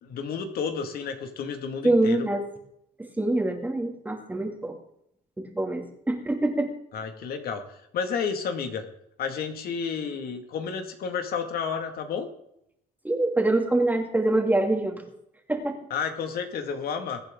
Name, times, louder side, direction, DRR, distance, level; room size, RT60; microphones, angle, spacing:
voice 1, 0.0-2.3 6.9-8.8 9.2-12.3 15.9-17.2, left 6 dB, 65° left, 6 dB, 2.1 m, -31 dB
voice 2, 1.8-2.4 3.0-4.8 5.4-6.7 13.0-15.0 15.5-15.8, right 2 dB, 10° right, 2 dB, 2.6 m, -25 dB
23.0 x 8.9 x 3.8 m, 0.76 s
cardioid pair, 110°, 17 cm